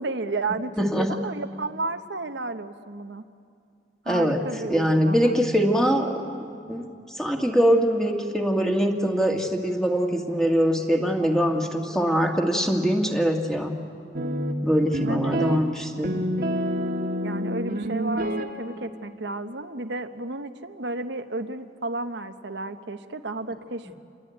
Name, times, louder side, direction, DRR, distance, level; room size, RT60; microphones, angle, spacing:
voice 1, 0.0-3.2 4.0-5.4 15.0-15.4 17.2-23.9, right 2 dB, 80° right, 7 dB, 1.1 m, -32 dB
voice 2, 0.8-1.1 4.1-4.4 4.7-6.9 7.1-13.8 14.6-16.3, equal, 5° left, 2 dB, 2.0 m, -23 dB
sound 1, 14.1-19.0, equal, 55° right, 1.5 m, -28 dB
28.5 x 22.0 x 9.2 m, 2.4 s
head